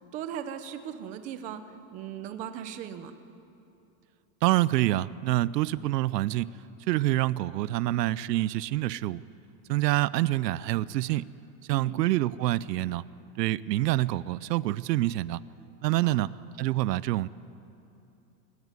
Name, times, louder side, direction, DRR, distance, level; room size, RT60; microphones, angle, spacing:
voice 1, 0.0-1.6 1.9-3.1 11.7-12.0 16.0-16.2, right 9 dB, 15° right, 10 dB, 0.5 m, -38 dB
voice 2, 4.4-6.5 6.9-9.2 9.7-11.3 11.7-13.0 13.4-15.4 15.8-16.3 16.6-17.3, right 16 dB, 90° right, 19 dB, 0.7 m, -26 dB
25.5 x 15.0 x 9.6 m, 2.9 s
supercardioid pair, 170°, 48 cm